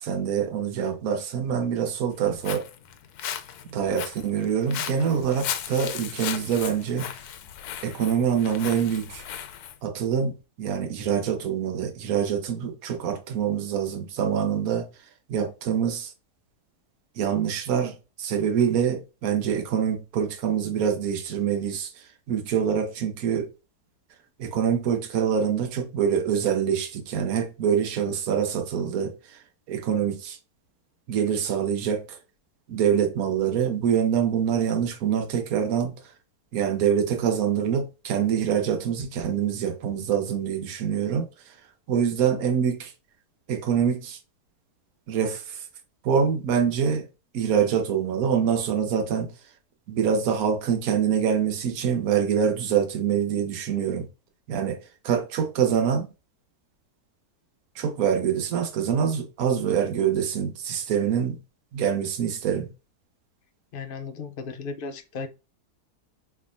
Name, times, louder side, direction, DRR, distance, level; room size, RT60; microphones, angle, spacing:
voice 1, 0.0-2.7 3.7-7.1 7.8-9.2 9.8-14.9 15.3-16.1 17.2-21.9 22.3-23.5 24.4-29.1 29.7-30.4 31.1-32.0 32.7-35.9 36.5-41.3 41.9-42.9 43.5-44.2 45.1-45.6 46.0-47.1 47.3-49.3 49.9-54.1 54.5-54.8 55.0-56.1 57.8-61.4 61.7-62.7, right 8 dB, 65° right, 1.3 m, -25 dB
Walk footsteps, 2.1-9.8, left 10 dB, 75° left, 1.1 m, -36 dB
voice 2, 63.7-65.3, left 4 dB, 55° left, 0.6 m, -35 dB
4.1 x 3.5 x 2.5 m
omnidirectional pair, 1.7 m